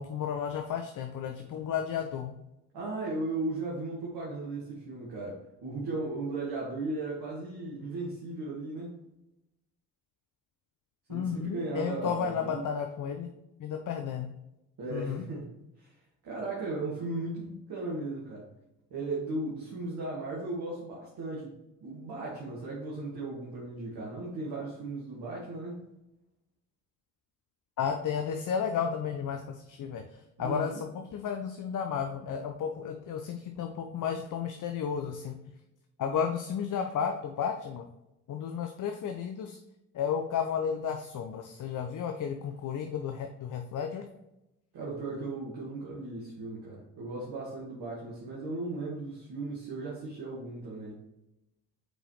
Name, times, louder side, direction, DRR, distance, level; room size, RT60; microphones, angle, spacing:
voice 1, 0.0-2.3 11.1-13.3 13.6-14.3 14.9-15.2 27.8-35.4 36.0-37.8 38.3-39.6 39.9-44.0, left 7 dB, 45° left, 5 dB, 0.7 m, -33 dB
voice 2, 2.7-8.9 11.1-12.6 14.8-15.5 15.8-15.9 16.2-18.4 18.9-21.5 21.8-25.8 30.4-30.8 44.7-51.0, right 2 dB, 60° right, -5 dB, 1.8 m, -36 dB
6.1 x 4.9 x 3.2 m, 0.92 s
hypercardioid pair, 45°, 46 cm